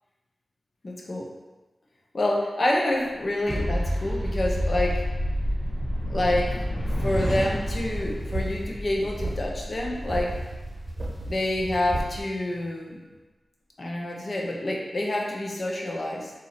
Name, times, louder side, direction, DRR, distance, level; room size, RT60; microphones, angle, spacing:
voice 1, 0.8-1.3 2.1-5.1 6.1-6.7 7.0-10.4 11.2-13.0 13.8-16.3, left 1 dB, 55° left, -1 dB, 0.8 m, -27 dB
sound 1, 3.4-11.7, equal, 80° left, 1.0 m, -33 dB
sound 2, 3.5-11.0, equal, 10° right, 1.1 m, -32 dB
sound 3, 7.0-8.7 9.0-9.4 9.9-12.2, right 1 dB, 45° right, 0.8 m, -34 dB
4.1 x 2.6 x 4.2 m, 1.2 s
cardioid pair, 45°, 0 cm